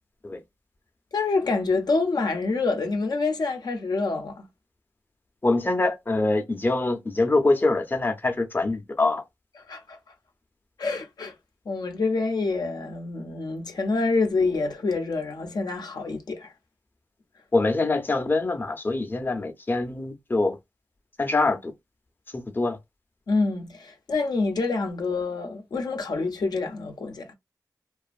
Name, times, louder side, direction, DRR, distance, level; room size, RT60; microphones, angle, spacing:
voice 1, 1.1-4.4 9.7-10.0 10.8-11.3 11.7-16.5 23.3-27.3, left 3 dB, 75° left, 0.5 m, -27 dB
voice 2, 5.4-9.2 17.5-20.6 21.2-21.7 22.3-22.8, left 2 dB, 30° left, 0.5 m, -24 dB
2.5 x 2.3 x 2.4 m
wide cardioid pair, 60°, 7 cm